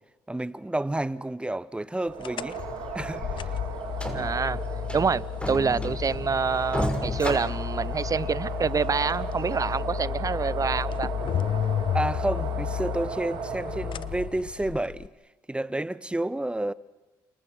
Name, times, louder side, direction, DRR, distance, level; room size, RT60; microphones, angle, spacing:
voice 1, 0.3-2.6 2.9-3.2 11.9-15.1 15.5-16.7, right 1 dB, 10° right, 1.2 m, -30 dB
sound 1, 2.0-14.4, right 7 dB, 80° right, 5.5 m, -37 dB
sound 2, 2.2-15.1, left 10 dB, 60° left, 0.8 m, -32 dB
sound 3, 2.6-2.8 3.1-3.2 3.5-3.6 4.0-4.5 4.9-6.3 6.7-8.3 8.8-8.9 9.5-9.6, left 1 dB, 10° left, 6.3 m, -32 dB
voice 2, 4.1-4.6 4.9-11.1, right 5 dB, 40° right, 0.9 m, -27 dB
30.0 x 28.5 x 6.3 m
supercardioid pair, 60°, 9 cm